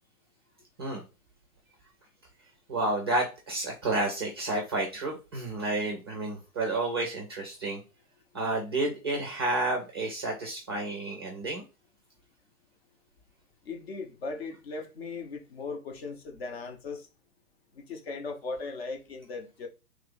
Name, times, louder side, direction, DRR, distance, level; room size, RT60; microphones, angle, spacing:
voice 1, 2.7-7.8 8.3-11.6, right 2 dB, 20° right, 0.4 m, -30 dB
voice 2, 13.6-17.1 17.7-19.7, left 3 dB, 45° left, 0.8 m, -38 dB
3.0 x 2.7 x 3.9 m
figure-of-eight pair, 120°, 45 cm